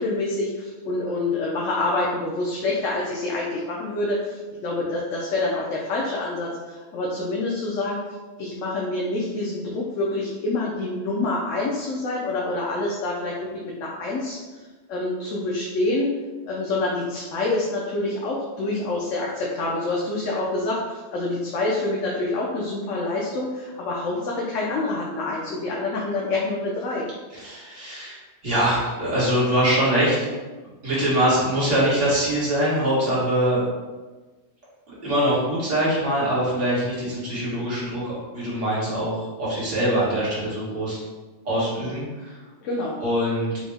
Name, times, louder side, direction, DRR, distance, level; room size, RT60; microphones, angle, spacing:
voice 1, 0.0-8.1 8.4-13.3 13.6-14.4 14.9-16.1 16.5-27.0 42.6-43.0, left 2 dB, 85° left, -4 dB, 1.0 m, -27 dB
voice 2, 27.3-30.2 30.8-33.6 34.9-41.0 41.5-42.4 43.0-43.5, right 1 dB, 70° right, -10 dB, 1.9 m, -23 dB
4.8 x 2.1 x 3.4 m, 1.3 s
omnidirectional pair, 1.3 m